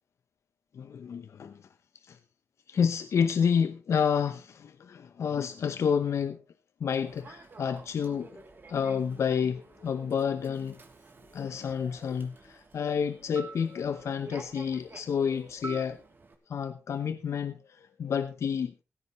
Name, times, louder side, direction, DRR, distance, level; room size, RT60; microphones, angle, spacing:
voice 1, 0.7-1.7 2.0-2.2 2.7-6.4 6.8-8.4 8.7-10.8 11.3-16.0 16.5-18.7, left 7 dB, 75° left, 0.8 m, -29 dB
Human voice / Subway metro underground, 6.9-16.3, right 4 dB, 45° right, 2.9 m, -49 dB
15.5 x 14.0 x 3.1 m
wide cardioid pair, 100°, 5 cm